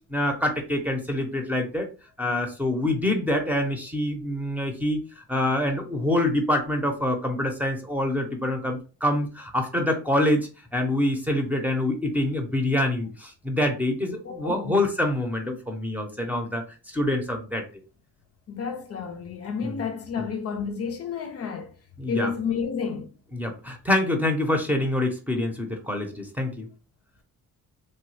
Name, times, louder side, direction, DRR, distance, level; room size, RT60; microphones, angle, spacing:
voice 1, 0.1-1.9 2.2-5.0 5.3-16.6 16.9-17.6 19.6-19.8 22.0-22.3 23.3-26.7, left 1 dB, 5° right, 0.8 m, -26 dB
voice 2, 14.2-14.9 18.5-21.7 22.1-23.2, left 6 dB, 50° left, 0.6 m, -31 dB
3.1 x 2.1 x 3.2 m
cardioid pair, 90°, 30 cm